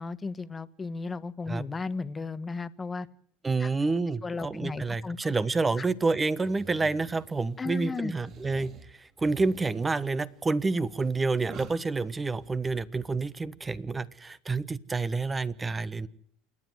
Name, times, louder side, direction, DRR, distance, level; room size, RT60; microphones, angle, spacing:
voice 1, 0.0-3.1 3.6-3.7 4.2-5.3 5.8-5.9 7.6-8.1, left 4 dB, 20° left, 14 dB, 1.2 m, -35 dB
voice 2, 3.4-16.1, right 3 dB, 20° right, 16 dB, 1.2 m, -29 dB
sound 1, 6.4-7.7 8.1-12.5, right 5 dB, 45° right, 3.2 m, -48 dB
28.0 x 10.5 x 9.6 m, 0.65 s
supercardioid pair, 105°, 0 cm